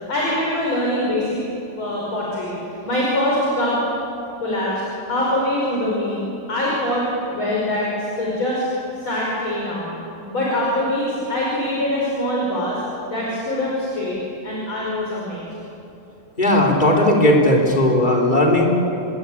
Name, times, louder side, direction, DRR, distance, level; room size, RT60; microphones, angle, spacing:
voice 1, 0.1-1.4 1.8-2.5 2.8-3.8 4.4-6.2 6.5-7.1 7.3-7.9 8.2-8.6 8.9-9.9 10.3-12.8 13.1-14.2 14.4-15.5, left 1 dB, 30° left, -5 dB, 6.0 m, -23 dB
voice 2, 16.4-18.7, left 1 dB, 10° left, -2 dB, 3.7 m, -16 dB
27.5 x 22.0 x 8.8 m, 2.8 s
omnidirectional pair, 4.8 m